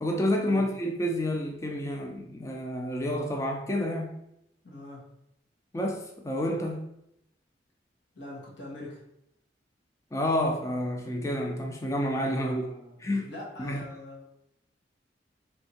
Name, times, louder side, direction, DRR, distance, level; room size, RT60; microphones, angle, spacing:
voice 1, 0.0-4.1 5.7-6.8 10.1-12.7 13.0-13.3 13.6-13.8, left 1 dB, 15° left, 0.4 m, -29 dB
voice 2, 4.6-5.0 8.1-9.0 12.3-14.2, left 1 dB, 90° left, 1.3 m, -43 dB
3.4 x 2.7 x 4.2 m
head